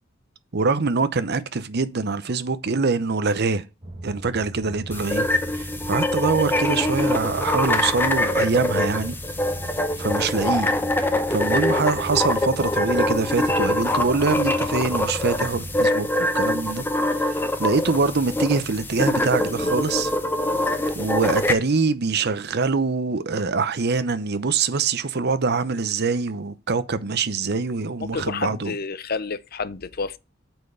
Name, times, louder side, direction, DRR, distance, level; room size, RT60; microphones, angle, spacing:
voice 1, 0.5-3.6 4.0-5.3 5.5-9.2 10.0-10.7 11.3-16.9 17.1-20.1 20.9-28.7, right 4 dB, 55° right, 0.8 m, -24 dB
sound 1, 3.8-15.9, right 1 dB, 30° right, 1.4 m, -38 dB
sound 2, 4.9-21.5, left 1 dB, 10° left, 0.8 m, -24 dB
voice 2, 28.1-30.2, left 4 dB, 50° left, 0.7 m, -30 dB
8.1 x 4.6 x 6.8 m
head